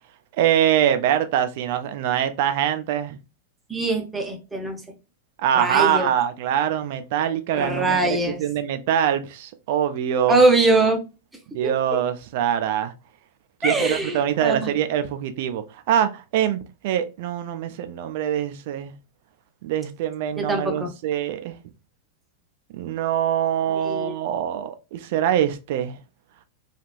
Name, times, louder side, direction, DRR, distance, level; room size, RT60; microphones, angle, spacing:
voice 1, 0.4-3.2 5.4-10.4 11.5-12.9 13.6-18.9 19.6-21.5 22.7-26.0, right 10 dB, 50° right, 0.3 m, -24 dB
voice 2, 3.7-4.8 5.5-6.1 7.5-8.4 10.3-11.0 11.6-11.7 13.6-14.6 20.4-20.9 23.8-24.2, right 2 dB, 10° right, 0.6 m, -22 dB
3.0 x 2.4 x 2.3 m
figure-of-eight pair, 95°, 0 cm